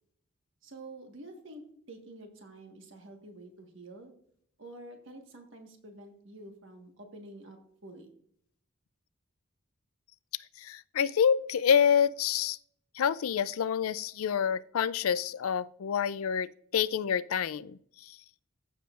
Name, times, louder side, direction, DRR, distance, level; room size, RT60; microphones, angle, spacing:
voice 1, 0.6-1.6 1.9-4.1 4.6-8.1, right 2 dB, 60° right, 4 dB, 1.5 m, -48 dB
voice 2, 10.6-12.6 13.0-18.2, left 7 dB, 85° left, 17 dB, 0.4 m, -27 dB
15.0 x 6.9 x 2.5 m, 0.65 s
head